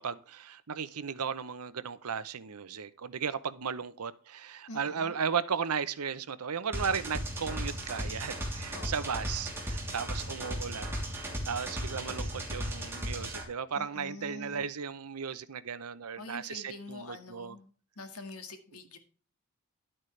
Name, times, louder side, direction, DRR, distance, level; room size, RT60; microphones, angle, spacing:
voice 1, 0.0-17.6, right 6 dB, 85° right, 0.8 m, -35 dB
voice 2, 4.7-5.1 8.7-9.2 13.7-14.6 16.2-17.7 18.0-19.0, left 2 dB, 80° left, 1.9 m, -45 dB
sound 1, 6.7-13.4, equal, 10° right, 3.0 m, -36 dB
11.5 x 8.8 x 3.3 m
head